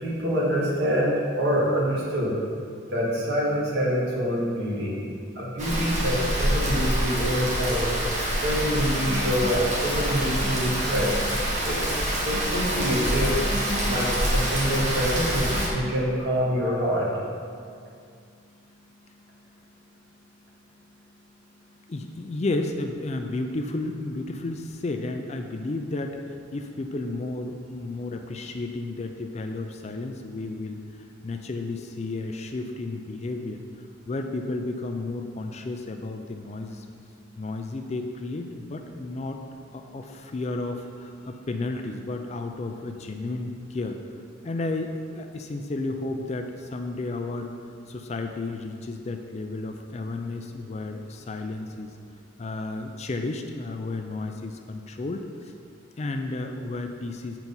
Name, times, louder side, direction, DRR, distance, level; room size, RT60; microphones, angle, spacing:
voice 1, 0.0-2.4 2.9-5.0 5.4-7.9 8.4-11.2 11.6-15.5 15.7-17.1, equal, 55° right, -6 dB, 2.0 m, -26 dB
Rain, 5.6-15.7, equal, 35° right, 1.4 m, -26 dB
voice 2, 21.9-33.6 34.1-36.9 37.4-39.4 39.7-44.0 44.4-47.5 47.9-51.9 52.4-55.5 56.0-57.4, left 2 dB, 35° left, 5 dB, 0.4 m, -32 dB
7.9 x 4.5 x 5.4 m, 2.3 s
head